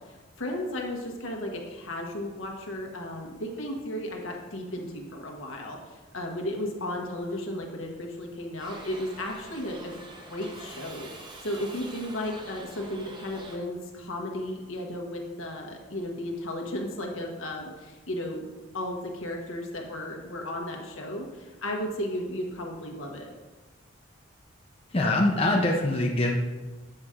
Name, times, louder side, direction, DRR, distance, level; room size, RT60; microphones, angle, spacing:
voice 1, 0.0-9.9 10.3-18.4 18.7-23.3, left 1 dB, 75° left, 1 dB, 1.2 m, -34 dB
Shout / Livestock farm animals working animals, 8.6-13.6, right 2 dB, 25° right, 0.7 m, -45 dB
voice 2, 24.9-26.3, left 1 dB, 30° left, 0 dB, 0.6 m, -23 dB
7.9 x 5.6 x 3.7 m, 1.2 s
head